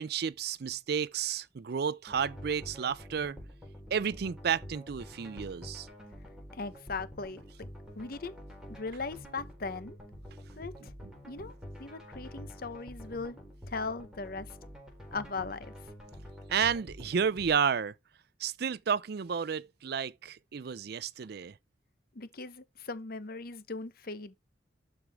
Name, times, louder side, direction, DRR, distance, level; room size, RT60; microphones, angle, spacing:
voice 1, 0.0-3.4 3.9-5.9 11.0-11.1 16.5-17.9 18.4-21.5, right 7 dB, 60° right, 0.4 m, -31 dB
sound 1, 2.1-17.5, equal, 5° right, 4.1 m, -48 dB
voice 2, 6.5-7.7 8.0-8.3 8.7-10.0 10.6-10.9 11.3-11.5 11.8-13.4 13.7-14.6 15.1-15.7 22.1-24.3, left 4 dB, 55° left, 0.9 m, -39 dB
12.0 x 4.7 x 3.5 m
head